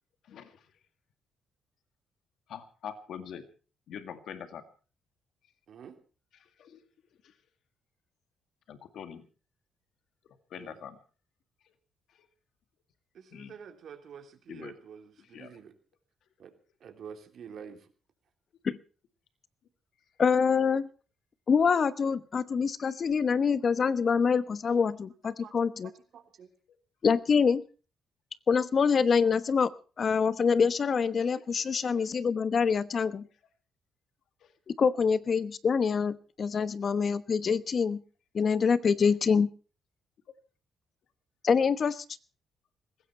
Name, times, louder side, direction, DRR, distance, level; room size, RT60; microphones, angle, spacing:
voice 1, 0.3-0.6 2.5-3.4 3.9-4.6 6.4-6.8 7.2-7.3 8.7-9.3 10.5-11.0 13.3-13.6 14.5-14.7 15.2-15.5 31.2-31.4 32.0-32.1 34.4-34.5, left 8 dB, 70° left, 9 dB, 1.9 m, -44 dB
voice 2, 13.1-15.7 16.4-16.5 16.8-17.9 25.4-25.7 26.1-26.5, right 7 dB, 65° right, 4 dB, 3.4 m, -48 dB
voice 3, 20.2-20.9 21.5-25.9 27.0-27.6 28.5-29.7 30.0-33.3 34.8-38.0 38.3-39.5 41.4-42.0, left 6 dB, 45° left, 14 dB, 1.1 m, -25 dB
19.5 x 16.0 x 4.5 m, 0.38 s
cardioid pair, 90°, 0 cm